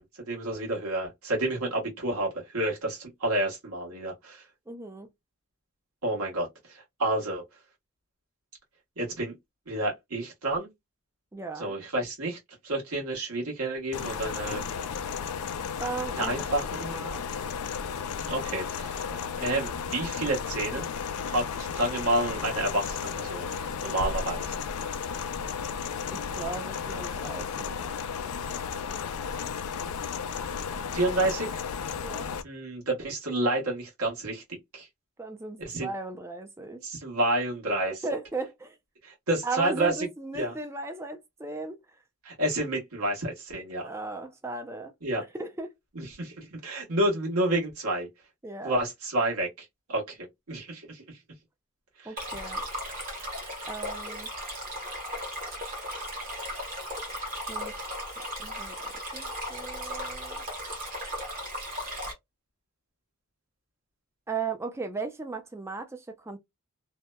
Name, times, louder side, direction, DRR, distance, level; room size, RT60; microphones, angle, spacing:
voice 1, 0.0-4.4 6.0-7.4 9.0-9.3 9.7-10.7 11.6-12.4 12.6-14.6 16.2-16.9 18.2-19.1 19.3-20.9 21.3-23.5 23.8-24.5 30.9-31.5 32.4-34.4 34.7-34.9 35.6-35.9 36.8-38.0 39.0-39.9 40.3-40.5 42.2-43.9 45.0-45.2 46.0-48.1 48.6-50.2 50.5-51.0 52.0-52.1, right 1 dB, 75° right, 1.2 m, -29 dB
voice 2, 4.7-5.1 11.3-11.8 15.8-17.2 26.1-27.8 32.0-32.3 35.2-36.8 38.0-38.8 39.4-41.8 43.8-45.7 48.4-48.8 52.1-52.6 53.7-54.3 57.5-58.0 58.4-58.8 59.1-60.4 64.3-66.4, right 3 dB, 10° right, 0.4 m, -36 dB
sound 1, 13.9-32.4, left 6 dB, 75° left, 0.4 m, -34 dB
Stream, 52.2-62.1, equal, 40° right, 0.9 m, -36 dB
2.7 x 2.1 x 2.2 m
head